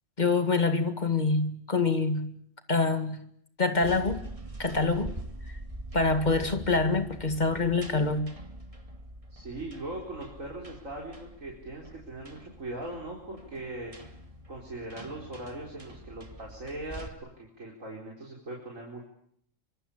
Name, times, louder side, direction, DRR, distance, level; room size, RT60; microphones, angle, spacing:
voice 1, 0.2-2.4 2.7-3.3 3.6-4.2 4.6-5.1 5.4-5.6 5.9-8.4, left 3 dB, 35° left, 2.0 m, -26 dB
sound 1, 3.8-17.1, right 1 dB, 25° right, 2.2 m, -44 dB
voice 2, 9.3-13.9 14.5-19.1, right 2 dB, 80° right, 4.8 m, -40 dB
25.5 x 24.5 x 8.7 m
omnidirectional pair, 1.3 m